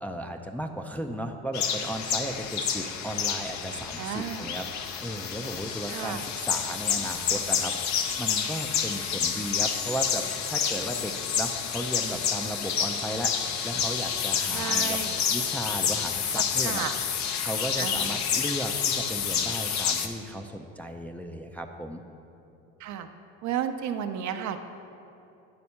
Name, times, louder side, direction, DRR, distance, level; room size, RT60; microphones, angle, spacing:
voice 1, 0.0-15.0 15.3-16.9 17.4-22.0, right 1 dB, 5° left, 2 dB, 0.4 m, -35 dB
sound 1, 1.5-20.1, left 7 dB, 55° left, 0.7 m, -29 dB
voice 2, 4.0-4.5 5.9-6.2 14.5-15.2 16.3-16.9 17.8-18.2 22.8-23.1 23.4-24.6, right 9 dB, 55° right, 8 dB, 0.6 m, -33 dB
9.6 x 4.2 x 5.6 m, 2.7 s
supercardioid pair, 70°, 34 cm